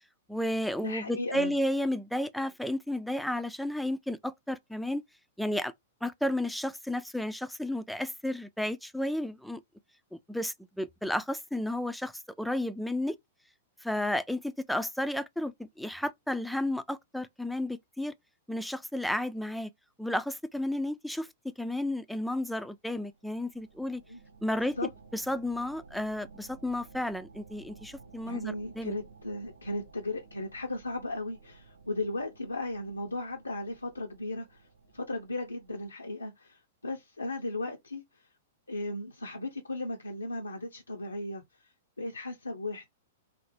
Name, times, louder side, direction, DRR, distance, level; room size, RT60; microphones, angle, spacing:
voice 1, 0.3-5.0 5.4-5.7 6.0-9.6 10.3-12.1 12.4-13.2 13.8-18.1 18.5-19.7 20.0-21.3 21.6-24.0 24.4-29.0, left 1 dB, ahead, 0.3 m, -32 dB
voice 2, 0.8-1.6 24.1-24.2 24.8-24.9 28.2-34.7 34.9-38.2 38.7-42.9, left 2 dB, 85° left, 0.5 m, -36 dB
sound 1, 23.1-35.9, right 4 dB, 80° right, 0.6 m, -55 dB
4.1 x 2.0 x 3.1 m
figure-of-eight pair, 105°, 0 cm